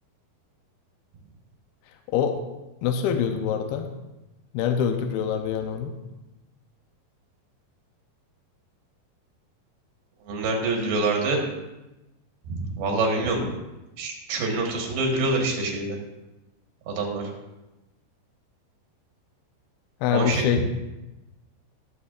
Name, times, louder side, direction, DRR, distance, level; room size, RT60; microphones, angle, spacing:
voice 1, 1.9-2.3 2.8-3.9 4.5-5.9 20.0-20.7, left 8 dB, 85° left, 5 dB, 2.6 m, -25 dB
voice 2, 10.3-11.4 12.5-13.5 14.0-16.0 16.9-17.3 20.1-20.5, right 3 dB, 85° right, 1 dB, 3.4 m, -26 dB
18.5 x 7.1 x 2.5 m, 1.0 s
omnidirectional pair, 4.3 m